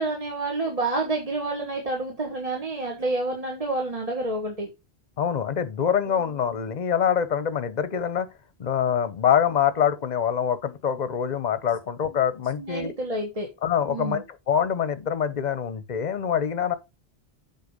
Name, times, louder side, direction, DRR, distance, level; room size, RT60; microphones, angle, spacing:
voice 1, 0.0-4.7 6.1-6.2 12.6-13.5 13.9-14.2, right 2 dB, 35° right, 1.5 m, -29 dB
voice 2, 5.2-8.3 8.6-12.9 13.6-16.7, left 8 dB, 45° left, 0.9 m, -25 dB
8.1 x 4.4 x 5.0 m
omnidirectional pair, 1.0 m